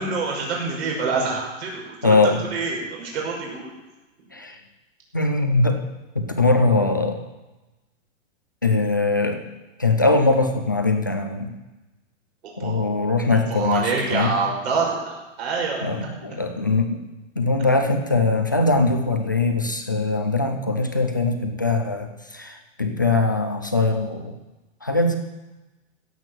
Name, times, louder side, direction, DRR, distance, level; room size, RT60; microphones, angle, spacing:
voice 1, 0.0-3.7 12.4-15.9, right 4 dB, 50° right, -2 dB, 5.8 m, -27 dB
voice 2, 2.0-2.4 4.3-4.6 5.1-5.8 6.1-7.2 8.6-9.4 9.8-11.5 12.6-14.3 15.8-17.0 17.4-24.3 24.8-25.2, left 3 dB, 15° left, 4 dB, 0.4 m, -21 dB
16.0 x 8.2 x 6.0 m, 1.1 s
hypercardioid pair, 170°, 39 cm